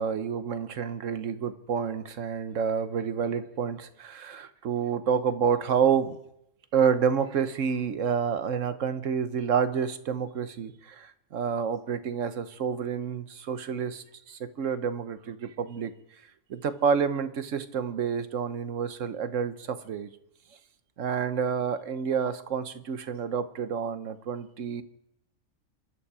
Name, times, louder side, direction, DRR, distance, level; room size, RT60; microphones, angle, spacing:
voice 1, 0.0-6.2 6.7-15.9 16.5-20.1 21.0-24.8, right 7 dB, 70° right, 11 dB, 1.3 m, -29 dB
26.0 x 11.5 x 4.9 m, 0.78 s
omnidirectional pair, 1.4 m